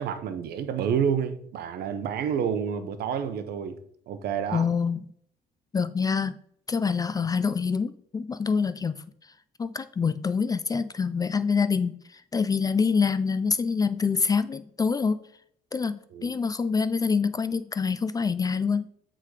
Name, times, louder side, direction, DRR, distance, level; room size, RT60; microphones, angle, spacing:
voice 1, 0.0-3.8 4.1-4.7 16.1-16.3, right 7 dB, 70° right, 0.9 m, -29 dB
voice 2, 4.5-5.0 5.7-6.4 6.7-9.0 9.6-15.3 15.7-18.9, left 5 dB, 20° left, 0.4 m, -26 dB
8.3 x 3.8 x 4.8 m
cardioid pair, 110°, 17 cm